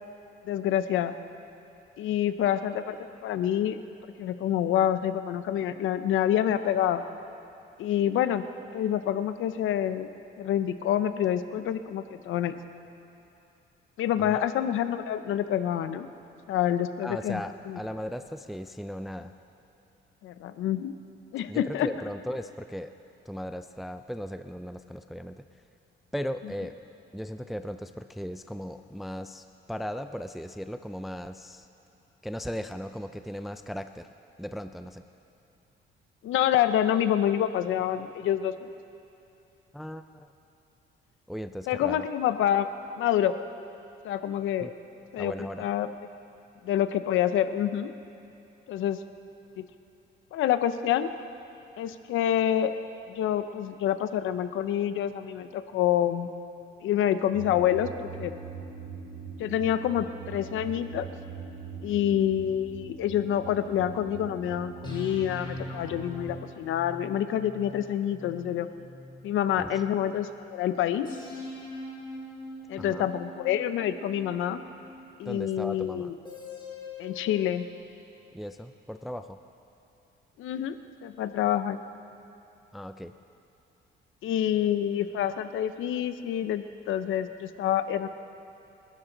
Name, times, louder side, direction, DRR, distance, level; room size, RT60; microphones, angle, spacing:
voice 1, 0.4-1.1 2.0-3.8 4.2-7.0 7.8-8.4 8.7-10.1 10.4-12.6 14.0-16.1 16.5-17.4 17.7-17.8 20.2-20.9 21.3-21.9 36.2-38.5 41.7-42.7 43.0-43.3 44.0-44.7 45.1-45.3 45.6-45.9 46.6-47.9 48.7-49.0 49.6-49.7 50.3-51.1 51.8-52.7 53.1-56.3 56.8-58.3 59.4-61.1 61.8-68.7 69.2-71.1 72.7-74.6 75.2-76.1 77.0-77.7 80.4-80.7 81.0-81.8 84.2-88.1, left 10 dB, 85° left, 11 dB, 0.8 m, -27 dB
voice 2, 17.0-19.3 21.5-22.9 23.3-25.4 26.1-26.8 27.1-31.7 32.2-34.1 34.4-35.0 39.7-40.3 41.3-42.1 44.6-44.7 45.2-45.7 69.6-69.8 72.8-73.1 75.2-76.1 78.3-79.4 82.7-83.1, equal, ahead, 9 dB, 0.5 m, -37 dB
sound 1, 57.3-66.4, right 6 dB, 85° right, 2.2 m, -42 dB
sound 2, 62.2-64.2 64.8-70.0 71.1-75.3 76.3-77.8, left 2 dB, 25° left, 3.4 m, -43 dB
28.0 x 12.5 x 4.0 m, 2.8 s
cardioid pair, 90°, 20 cm